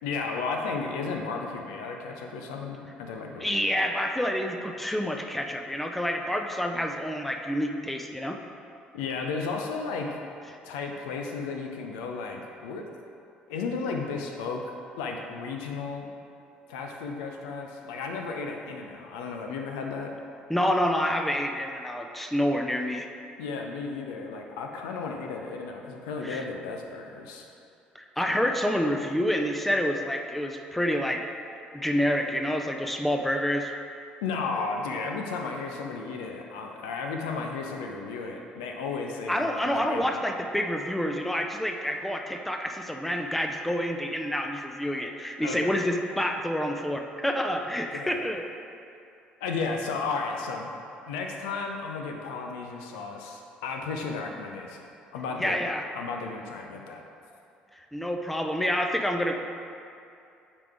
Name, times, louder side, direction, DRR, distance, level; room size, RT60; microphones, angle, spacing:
voice 1, 0.0-3.7 8.9-10.2 10.6-12.9 13.5-16.1 16.7-20.1 23.4-27.5 34.2-40.2 45.4-45.7 47.9-48.2 49.4-50.7 51.1-55.6 55.9-57.0, left 4 dB, 65° left, 2 dB, 0.6 m, -34 dB
voice 2, 3.4-8.4 20.5-23.1 26.2-26.5 27.9-31.2 31.7-33.7 39.3-48.4 55.4-55.8 57.9-59.3, equal, 5° left, 3 dB, 0.6 m, -28 dB
8.3 x 5.0 x 3.5 m, 2.6 s
figure-of-eight pair, 50°, 5 cm